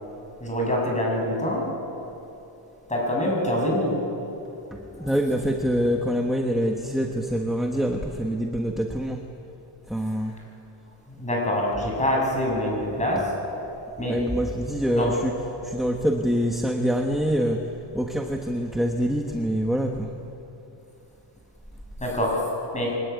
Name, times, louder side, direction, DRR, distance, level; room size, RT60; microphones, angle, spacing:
voice 1, 0.4-1.7 2.9-4.0 11.1-13.3 14.0-14.2 15.0-15.1 22.0-22.4 22.7-22.9, left 1 dB, 15° left, -1 dB, 7.3 m, -25 dB
voice 2, 4.7-9.2 9.9-10.3 14.0-15.3 15.6-17.6 17.9-20.1, equal, ahead, 2 dB, 1.3 m, -25 dB
23.5 x 20.0 x 9.5 m, 3.0 s
cardioid pair, 125°, 44 cm